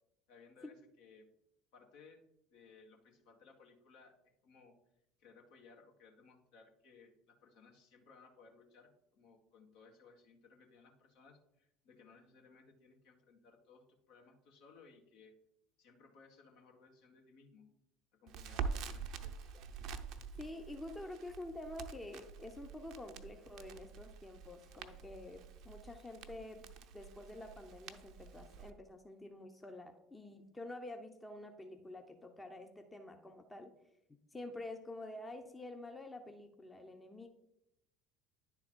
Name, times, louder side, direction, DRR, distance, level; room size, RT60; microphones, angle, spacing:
voice 1, 0.3-1.2 1.7-2.2 2.5-4.2 4.4-4.7 5.2-15.3 15.8-17.7 18.1-19.5, left 4 dB, 60° left, 2 dB, 1.3 m, -62 dB
Crackle, 18.3-28.7, right 6 dB, 55° right, 0.6 m, -46 dB
voice 2, 20.4-33.7 34.3-37.3, left 1 dB, 15° left, 5 dB, 0.8 m, -48 dB
10.0 x 3.9 x 4.5 m, 0.82 s
figure-of-eight pair, 65°, 0 cm